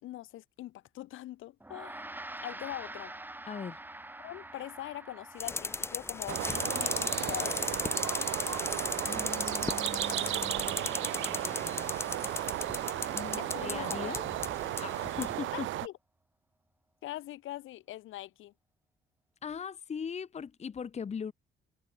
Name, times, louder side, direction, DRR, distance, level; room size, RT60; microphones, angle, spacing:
voice 1, 0.0-2.1 2.4-3.1 4.2-7.6 13.4-14.1 15.5-15.9 17.0-18.5, left 15 dB, 85° left, 2.1 m, -42 dB
Gong, 1.6-11.1, right 1 dB, 10° right, 2.1 m, -48 dB
voice 2, 3.5-3.8 9.1-11.9 13.1-14.2 14.8-15.7 19.4-21.3, left 6 dB, 35° left, 0.8 m, -40 dB
sound 1, 5.4-15.4, left 3 dB, 15° left, 0.3 m, -36 dB
sound 2, 6.3-15.9, right 15 dB, 75° right, 0.6 m, -35 dB
cardioid pair, 90°, 20 cm